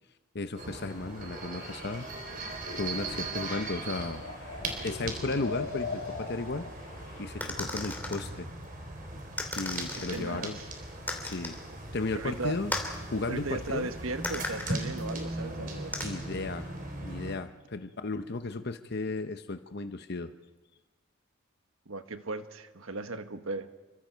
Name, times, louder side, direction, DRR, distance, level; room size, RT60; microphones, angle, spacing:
voice 1, 0.3-2.2 2.8-4.2 4.8-6.7 7.2-8.5 9.5-10.6 11.2-11.6 11.9-12.7 13.1-13.9 16.0-16.7 17.0-20.3, left 3 dB, 50° left, 8 dB, 0.9 m, -34 dB
sound 1, 0.6-17.3, right 2 dB, 45° right, 4.1 m, -39 dB
sound 2, 1.6-7.3, left 4 dB, 80° left, 3.4 m, -42 dB
sound 3, 7.4-8.2 9.4-10.2 11.1-11.6 12.7-13.0 14.2-14.8 15.9-16.0, left 2 dB, 10° left, 2.8 m, -35 dB
voice 2, 9.9-10.7 12.1-12.6 13.3-16.1 21.9-23.7, right 3 dB, 80° right, 8 dB, 1.3 m, -37 dB
28.5 x 24.5 x 4.6 m, 1.2 s
head